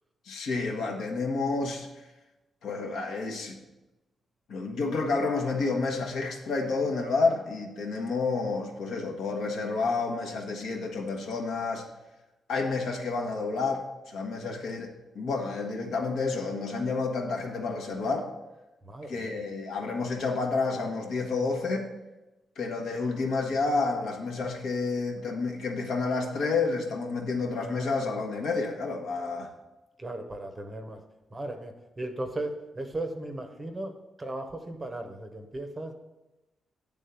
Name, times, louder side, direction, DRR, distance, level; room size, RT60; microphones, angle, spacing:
voice 1, 0.2-1.9 2.6-3.6 4.5-11.9 12.5-18.3 19.1-21.9 22.6-29.5, left 3 dB, 70° left, 1 dB, 1.2 m, -30 dB
voice 2, 18.8-19.4 30.0-31.0 31.3-35.9, right 1 dB, 15° right, 5 dB, 0.7 m, -37 dB
9.2 x 3.6 x 6.8 m, 1.0 s
wide cardioid pair, 175°, 0 cm